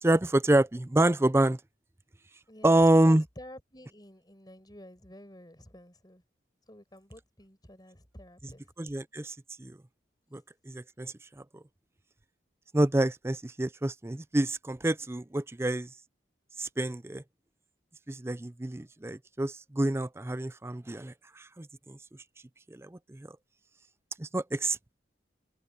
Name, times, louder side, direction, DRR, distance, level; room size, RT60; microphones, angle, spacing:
voice 1, 0.0-1.6 2.6-3.2 8.8-9.8 10.3-11.4 12.7-15.9 16.6-17.2 18.1-22.0 22.7-23.3 24.2-24.9, right 1 dB, 15° right, 0.5 m, -27 dB
voice 2, 2.5-6.2 6.7-8.7, left 1 dB, 25° left, 6.0 m, -50 dB
open air
head